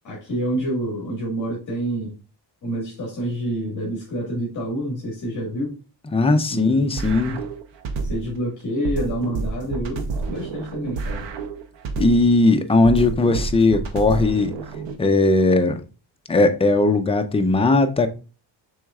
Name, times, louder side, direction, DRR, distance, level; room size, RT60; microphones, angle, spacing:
voice 1, 0.0-2.1 2.6-5.8 6.5-6.9 8.0-11.3, right 1 dB, 45° left, 1.6 m, -28 dB
voice 2, 6.1-7.4 12.0-14.5 15.0-15.8 16.3-18.1, left 2 dB, 15° left, 0.4 m, -18 dB
sound 1, 7.0-8.4 8.8-12.4 12.8-15.0, right 4 dB, 80° right, 0.8 m, -29 dB
6.2 x 3.6 x 2.3 m
wide cardioid pair, 145°, 43 cm